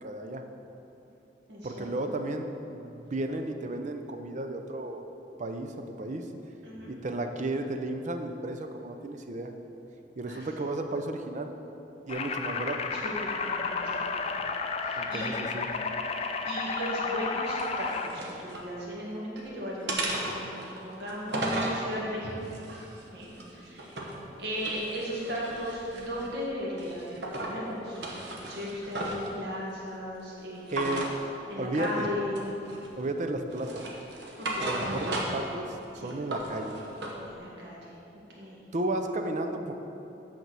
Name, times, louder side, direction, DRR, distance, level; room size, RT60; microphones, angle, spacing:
voice 1, 0.0-0.4 1.6-5.0 5.4-6.3 6.9-9.5 10.2-11.5 12.1-12.9 14.4-14.5 15.0-15.7 30.7-31.3 31.6-32.1 33.0-33.8 34.6-35.8 36.0-36.8 38.7-39.7, right 2 dB, 45° right, 6 dB, 0.5 m, -33 dB
voice 2, 1.5-1.9 6.6-6.9 10.3-10.5 12.9-14.2 14.8-15.4 16.5-22.3 23.1-23.9 24.4-27.0 27.4-28.0 28.4-30.9 31.5-32.3 34.4-35.0 36.0-36.1 37.2-37.9 38.4-38.6, equal, 90° right, -5 dB, 1.9 m, -36 dB
sound 1, 12.1-18.1, left 4 dB, 35° left, 0.4 m, -32 dB
sound 2, 17.5-18.7 19.1-19.5 19.9-21.8 22.4-24.2 24.5-26.4 26.8-27.6 27.9-29.3 30.7-31.1 31.8-32.0 32.3-33.1 33.5-35.5 35.8-37.2, right 1 dB, 70° right, 1.1 m, -35 dB
8.2 x 4.5 x 6.1 m, 3.0 s
head